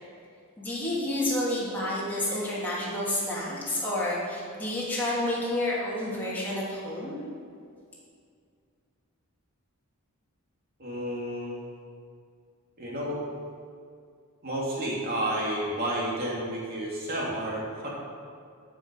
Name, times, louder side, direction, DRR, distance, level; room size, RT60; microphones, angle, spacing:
voice 1, 0.6-7.1, left 1 dB, 10° left, -8 dB, 2.8 m, -29 dB
voice 2, 10.8-11.6 12.8-13.2 14.4-17.9, right 1 dB, 45° right, -4 dB, 2.7 m, -31 dB
13.0 x 6.4 x 5.4 m, 2.2 s
head